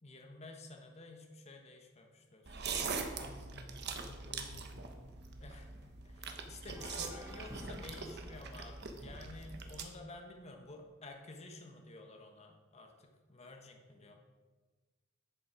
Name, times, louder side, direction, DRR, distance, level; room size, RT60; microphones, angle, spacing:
voice 1, 0.0-2.6 5.4-14.1, left 2 dB, 30° left, 3 dB, 1.2 m, -52 dB
sound 1, 2.5-9.8, right 5 dB, 55° right, 1.0 m, -43 dB
voice 2, 3.1-5.2 13.9-14.0, left 2 dB, 15° left, -5 dB, 3.7 m, -55 dB
sound 2, 6.7-11.0, equal, 15° right, 1.0 m, -52 dB
11.0 x 7.1 x 5.1 m, 1.3 s
head